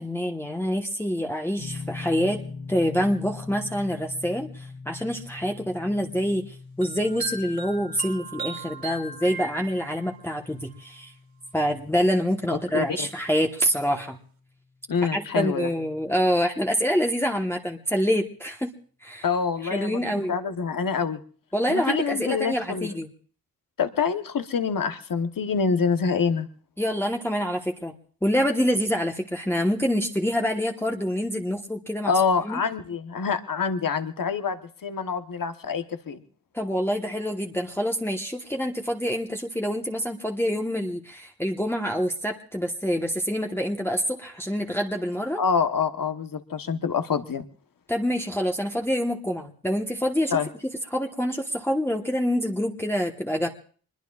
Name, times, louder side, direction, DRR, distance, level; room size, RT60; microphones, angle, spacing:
voice 1, 0.0-2.4 2.7-11.1 11.5-14.2 15.1-18.7 19.0-19.2 19.7-20.3 21.5-23.1 26.8-27.9 28.2-32.1 32.4-32.6 36.5-45.4 47.9-50.4 50.9-53.5, equal, 5° left, 1 dB, 1.2 m, -26 dB
sound 1, 1.6-14.5, left 4 dB, 80° left, 6.8 m, -43 dB
sound 2, 6.8-10.3, right 3 dB, 75° right, 4.3 m, -37 dB
voice 2, 12.5-13.1 14.9-15.7 19.2-20.0 20.3-21.2 21.7-22.9 23.8-26.5 32.1-36.2 45.4-47.4 50.3-50.5, left 6 dB, 60° left, 10 dB, 1.2 m, -26 dB
24.5 x 21.0 x 2.4 m, 0.43 s
cardioid pair, 55°, 38 cm